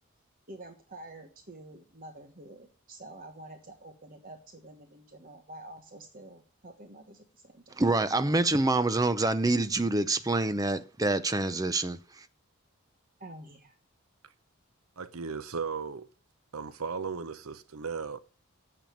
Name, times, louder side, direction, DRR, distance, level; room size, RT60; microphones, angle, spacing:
voice 1, 0.5-7.8 13.2-13.7, right 2 dB, 40° right, 1.4 m, -48 dB
voice 2, 7.8-12.2, right 2 dB, 15° right, 0.6 m, -26 dB
voice 3, 15.0-16.1 16.5-18.2, right 5 dB, 80° right, 0.8 m, -36 dB
9.1 x 6.9 x 8.7 m
head